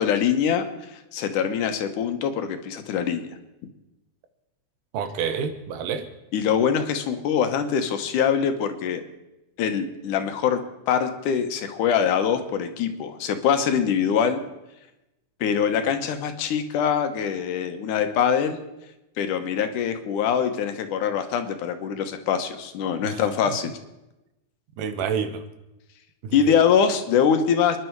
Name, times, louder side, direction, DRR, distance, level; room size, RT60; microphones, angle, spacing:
voice 1, 0.0-3.3 6.3-9.0 9.6-14.4 15.4-18.6 19.2-23.7 26.3-27.8, left 7 dB, 75° left, 7 dB, 2.7 m, -23 dB
voice 2, 4.9-6.1 23.0-23.2 24.8-25.4 26.2-26.6, right 6 dB, 80° right, 8 dB, 2.8 m, -28 dB
27.5 x 11.0 x 4.7 m, 0.96 s
omnidirectional pair, 3.7 m